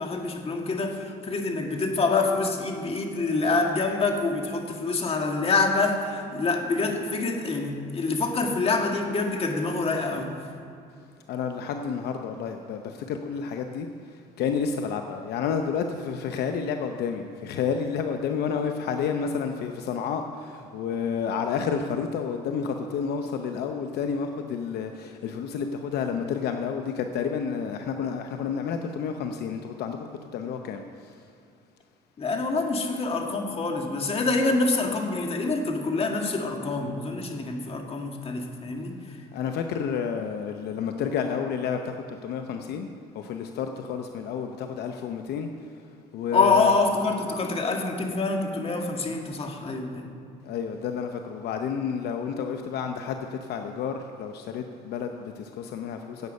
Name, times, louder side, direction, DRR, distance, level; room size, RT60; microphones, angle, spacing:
voice 1, 0.0-10.3 32.2-38.9 46.3-50.1, left 3 dB, 35° left, 2 dB, 1.8 m, -26 dB
voice 2, 11.3-13.9 14.1-31.1 39.3-42.9 43.1-45.5 46.1-46.7 50.4-56.3, left 6 dB, 75° left, 5 dB, 0.7 m, -30 dB
16.5 x 8.2 x 5.4 m, 2.5 s
cardioid pair, 110°, 17 cm